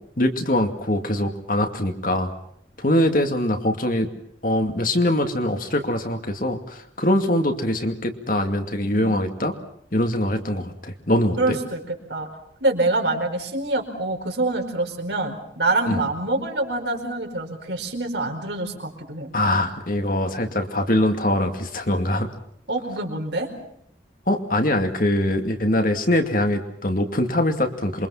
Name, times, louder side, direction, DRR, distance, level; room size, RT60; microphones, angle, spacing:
voice 1, 0.2-2.3 2.8-4.1 4.4-9.5 9.9-11.6 15.9-16.0 19.3-22.3 24.3-28.1, left 1 dB, 45° left, 5 dB, 2.4 m, -23 dB
voice 2, 11.4-12.3 12.6-19.3 22.7-23.5, right 2 dB, 70° right, 3 dB, 4.8 m, -25 dB
27.5 x 24.0 x 5.8 m, 0.71 s
head